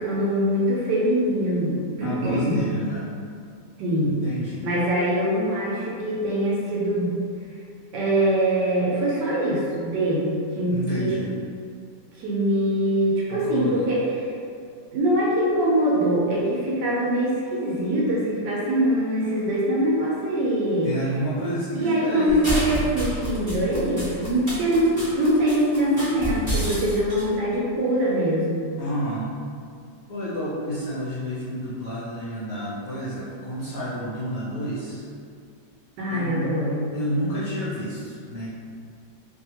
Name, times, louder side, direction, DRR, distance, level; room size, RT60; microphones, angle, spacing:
voice 1, 0.0-2.7 3.8-4.2 4.6-7.1 7.9-11.2 12.2-14.3 14.9-21.1 21.7-28.7 36.0-36.9, right 1 dB, 75° right, -5 dB, 1.2 m, -23 dB
voice 2, 2.0-3.1 4.0-4.7 10.7-11.3 13.3-13.9 20.8-22.8 28.8-29.3 30.1-35.0 36.1-36.5 36.9-38.5, equal, 65° left, -9 dB, 0.8 m, -30 dB
sound 1, 22.3-27.2, equal, 25° right, 0.4 m, -29 dB
2.7 x 2.7 x 2.8 m, 2.3 s
omnidirectional pair, 2.0 m